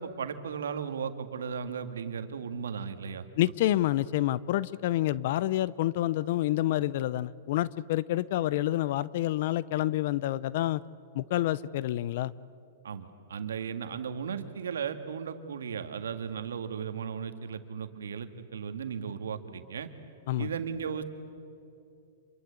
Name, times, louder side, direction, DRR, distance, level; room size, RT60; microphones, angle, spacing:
voice 1, 0.0-3.2 12.8-19.9 20.4-21.0, right 7 dB, 85° right, 8 dB, 2.0 m, -36 dB
voice 2, 3.4-10.8 11.1-12.3 20.3-20.5, left 14 dB, 55° left, 20 dB, 0.6 m, -28 dB
27.5 x 23.5 x 8.4 m, 2.6 s
hypercardioid pair, 135°, 0 cm